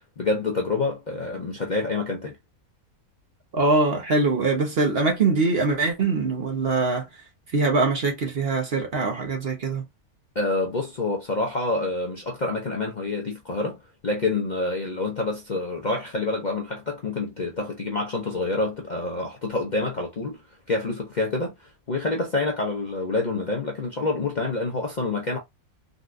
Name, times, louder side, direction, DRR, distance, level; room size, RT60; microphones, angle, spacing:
voice 1, 0.2-2.4 10.3-20.4 20.7-25.4, left 3 dB, 45° left, 0.6 m, -27 dB
voice 2, 3.5-7.1 7.5-9.8, right 3 dB, 50° right, 0.9 m, -23 dB
3.9 x 2.3 x 2.4 m
omnidirectional pair, 1.6 m